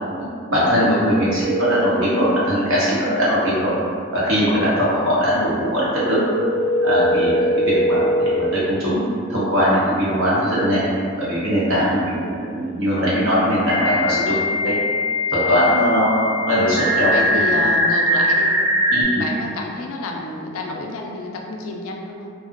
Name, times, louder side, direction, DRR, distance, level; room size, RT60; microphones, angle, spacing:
voice 1, 0.5-3.7 4.1-6.2 6.8-10.8 11.1-14.3 14.6-14.8 15.3-17.1 17.5-17.6 18.9-19.2, equal, 65° right, -8 dB, 0.8 m, -20 dB
sound 1, 1.4-2.3 6.3-8.3 10.9-11.0 13.7-19.0, left 1 dB, 20° right, 0.3 m, -21 dB
voice 2, 17.1-18.5 19.0-22.3, left 2 dB, 80° left, 0 dB, 0.3 m, -30 dB
2.4 x 2.0 x 2.5 m, 2.3 s
head